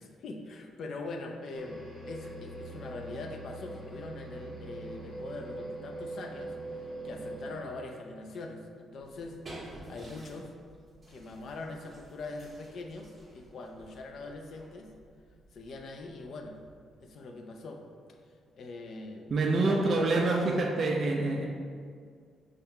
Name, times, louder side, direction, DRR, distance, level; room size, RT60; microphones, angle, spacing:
voice 1, 0.0-1.8 2.0-9.4 9.9-10.5 11.1-14.9 15.5-16.6 17.0-17.8 18.5-19.4 19.7-20.4, left 3 dB, 60° left, 3 dB, 0.5 m, -42 dB
sound 1, 1.5-7.6, right 2 dB, 15° left, 0.9 m, -42 dB
sound 2, 9.0-17.1, right 1 dB, 20° right, 1.3 m, -52 dB
voice 2, 19.3-21.5, right 2 dB, 45° right, 0 dB, 0.4 m, -26 dB
5.4 x 3.4 x 2.2 m, 2.1 s
cardioid pair, 90°, 0 cm